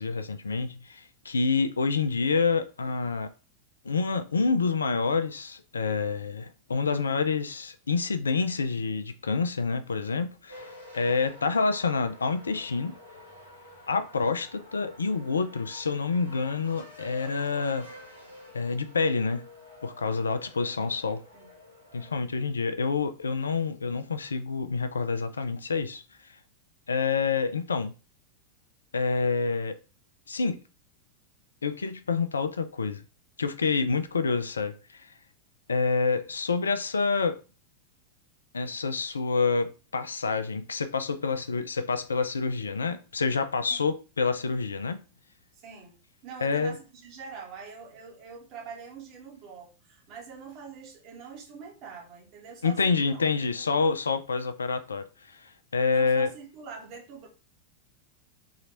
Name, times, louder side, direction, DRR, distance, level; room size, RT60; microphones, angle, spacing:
voice 1, 0.0-3.3 3.8-12.9 13.9-17.9 18.5-19.4 19.8-21.2 21.9-26.0 26.9-27.9 28.9-29.8 30.3-30.6 31.6-33.0 33.4-35.1 35.7-37.4 38.5-45.0 46.4-46.7 52.6-56.3, left 4 dB, 75° left, 0.5 m, -28 dB
sound 1, 10.5-22.2, left 1 dB, 90° right, 1.4 m, -49 dB
voice 2, 45.6-46.0 46.2-53.2 55.9-57.3, right 6 dB, 40° right, 1.7 m, -44 dB
4.0 x 3.2 x 3.9 m
figure-of-eight pair, 90°, 0 cm